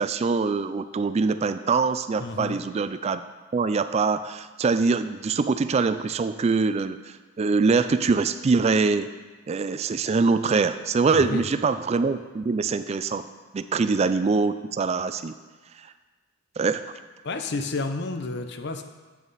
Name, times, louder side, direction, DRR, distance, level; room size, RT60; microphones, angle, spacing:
voice 1, 0.0-3.2 3.5-7.0 7.4-9.1 9.5-13.3 13.5-15.3 16.6-16.8, right 4 dB, 30° right, 12 dB, 0.3 m, -23 dB
voice 2, 2.2-2.6 11.1-11.5 17.2-18.8, left 3 dB, 55° left, 7 dB, 0.7 m, -30 dB
8.5 x 7.1 x 4.1 m, 1.3 s
head